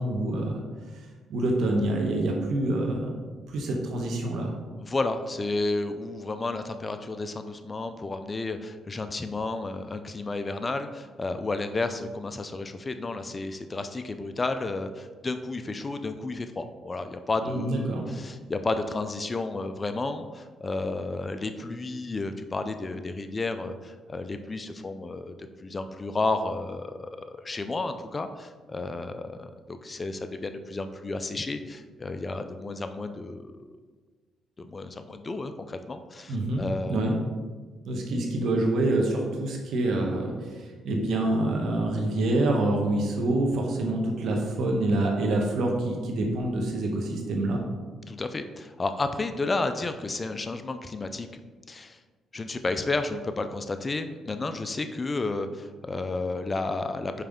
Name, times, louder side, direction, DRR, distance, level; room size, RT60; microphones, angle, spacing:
voice 1, 0.0-3.1 3.5-4.5 17.4-18.1 36.3-36.6 36.9-37.1 37.9-47.6, right 2 dB, 70° right, 1 dB, 1.1 m, -26 dB
voice 2, 4.8-33.6 34.6-37.0 48.1-51.4 51.7-52.0 52.3-57.2, left 3 dB, 25° left, 8 dB, 0.4 m, -32 dB
5.6 x 5.0 x 3.6 m, 1.4 s
cardioid pair, 100°, 0 cm